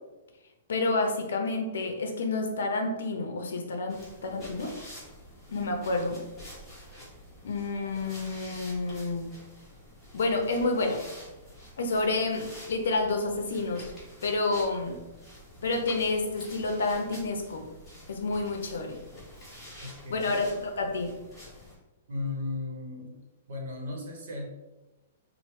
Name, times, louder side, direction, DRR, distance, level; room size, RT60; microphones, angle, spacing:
voice 1, 0.7-4.7 5.5-6.2 7.4-9.3 10.1-11.0 11.8-13.9 14.2-15.0 15.6-17.7 18.1-19.0 20.1-21.1, left 3 dB, 85° left, 3 dB, 0.5 m, -29 dB
sound 1, 3.9-21.7, equal, 5° left, 0.8 m, -48 dB
voice 2, 19.8-20.4 22.1-23.2 23.5-24.5, left 3 dB, 55° right, -1 dB, 0.8 m, -36 dB
3.1 x 2.0 x 3.0 m, 1.1 s
hypercardioid pair, 175°, 0 cm